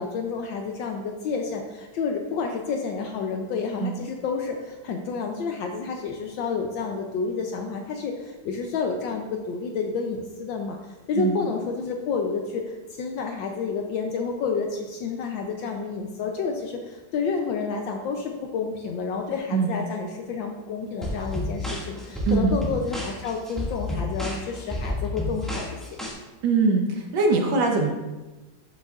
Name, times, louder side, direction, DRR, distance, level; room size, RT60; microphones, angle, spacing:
voice 1, 0.0-10.8 11.1-25.8, left 5 dB, 75° left, 3 dB, 1.4 m, -30 dB
sound 1, 21.0-26.1, left 1 dB, ahead, 1.7 m, -30 dB
voice 2, 22.3-22.6 26.4-27.9, right 4 dB, 70° right, 2 dB, 1.5 m, -22 dB
12.0 x 6.3 x 2.4 m, 1.2 s
omnidirectional pair, 2.1 m